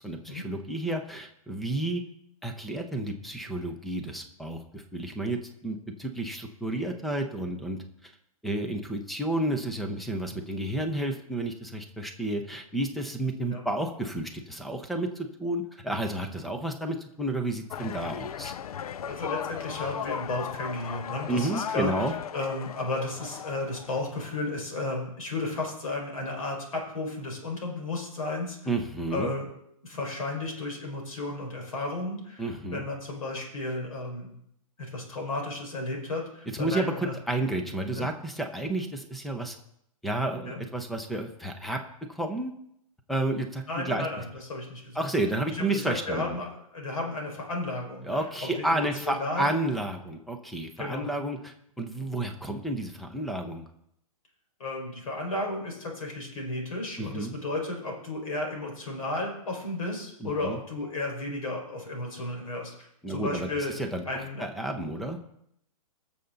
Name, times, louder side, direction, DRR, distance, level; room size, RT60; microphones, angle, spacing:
voice 1, 0.0-2.0 2.4-7.8 8.4-18.5 21.3-22.1 28.7-29.3 32.4-32.8 36.6-39.6 40.0-41.8 42.1-42.5 43.1-44.1 45.0-46.4 48.0-53.6 57.0-57.3 60.2-60.6 63.0-64.0 64.4-65.2, right 1 dB, ahead, 5 dB, 0.5 m, -31 dB
sound 1, 17.7-24.5, left 9 dB, 85° left, 0.5 m, -37 dB
voice 2, 19.1-28.7 29.1-29.5 29.8-34.3 34.8-37.1 37.9-38.1 40.4-40.6 43.7-45.0 45.5-49.5 50.8-51.1 54.6-64.4, left 2 dB, 70° left, 1 dB, 4.8 m, -33 dB
19.5 x 6.9 x 3.9 m, 0.74 s
hypercardioid pair, 170°, 19 cm